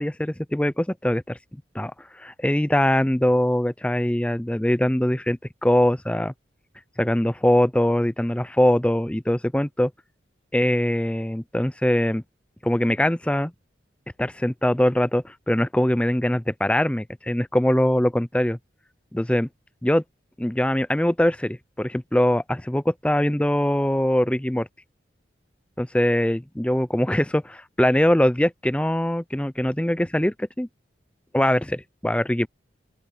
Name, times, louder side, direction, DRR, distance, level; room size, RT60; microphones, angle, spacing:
voice 1, 0.0-1.4 1.7-6.3 7.0-9.9 10.5-12.2 12.6-13.5 14.2-18.6 19.1-19.5 19.8-20.0 20.4-24.7 25.8-30.7 31.3-32.5, left 1 dB, 5° left, 0.5 m, -22 dB
open air
head